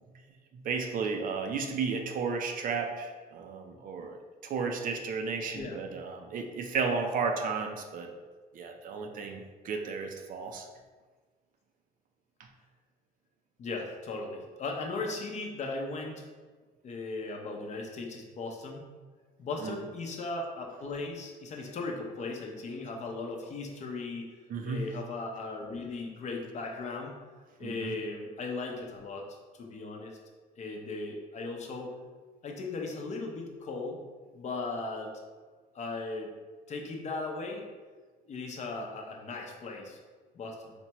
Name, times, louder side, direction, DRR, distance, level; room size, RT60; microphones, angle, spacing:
voice 1, 0.5-8.1 8.5-10.7 19.6-19.8 24.5-24.8 27.6-27.9, right 5 dB, 55° right, 4 dB, 0.5 m, -33 dB
voice 2, 13.6-16.3 16.8-18.9 19.4-24.4 24.6-27.2 27.6-29.3 29.6-30.2 30.6-31.9 32.4-34.0 34.3-35.1 35.7-36.3 36.7-37.6 38.2-40.0 40.3-40.7, left 3 dB, 45° left, 0 dB, 0.6 m, -37 dB
4.2 x 2.2 x 2.9 m, 1.4 s
cardioid pair, 110°, 17 cm